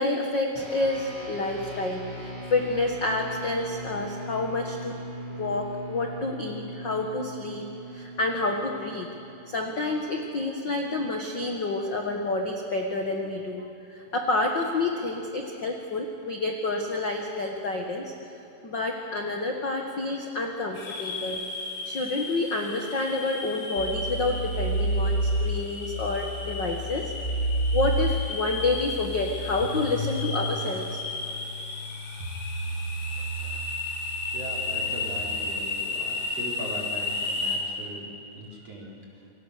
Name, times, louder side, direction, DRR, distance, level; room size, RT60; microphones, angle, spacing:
voice 1, 0.0-5.0 5.4-7.6 7.9-9.1 9.5-18.1 18.6-21.4 21.8-27.1 27.7-31.0 33.4-33.6, left 2 dB, 55° left, 2 dB, 1.2 m, -29 dB
sound 1, 0.5-10.2, right 1 dB, 5° right, 7.5 m, -40 dB
sound 2, 20.8-37.6, left 3 dB, 80° left, 5.4 m, -34 dB
sound 3, 23.8-35.2, right 1 dB, 85° right, 4.4 m, -31 dB
voice 2, 34.3-38.1 38.3-39.0, right 1 dB, 40° right, -2 dB, 5.0 m, -39 dB
28.0 x 24.5 x 6.7 m, 2.9 s
omnidirectional pair, 4.6 m